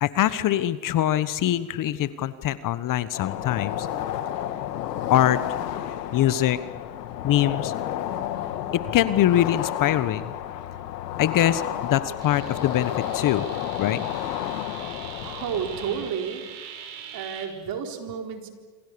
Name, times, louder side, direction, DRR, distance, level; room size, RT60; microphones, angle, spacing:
voice 1, 0.0-3.9 5.1-5.4 6.1-6.6 7.2-7.7 8.9-10.3 11.2-13.4 13.8-14.0, left 12 dB, 45° left, 14 dB, 1.3 m, -23 dB
sound 1, 3.1-16.1, left 11 dB, 90° left, 2.1 m, -31 dB
sound 2, 12.2-17.5, right 8 dB, 70° right, 5.8 m, -42 dB
voice 2, 15.2-16.4 17.1-18.5, right 7 dB, 45° right, 4 dB, 4.4 m, -31 dB
27.5 x 26.0 x 7.0 m, 1.3 s
supercardioid pair, 105°, 47 cm